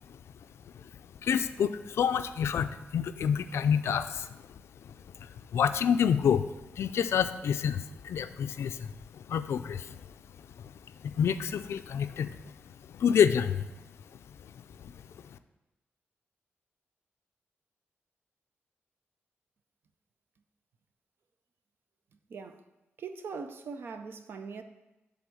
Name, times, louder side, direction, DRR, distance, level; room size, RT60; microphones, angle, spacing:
voice 1, 1.2-4.4 5.2-6.4 6.7-10.0 10.6-10.7 11.0-12.5 12.9-13.6 14.4-14.5 14.8-14.9 15.3-15.4, left 8 dB, 90° left, 0.4 m, -28 dB
voice 2, 22.3-22.6 23.0-24.6, right 5 dB, 60° right, 0.5 m, -41 dB
7.8 x 3.5 x 6.2 m
wide cardioid pair, 165°, 4 cm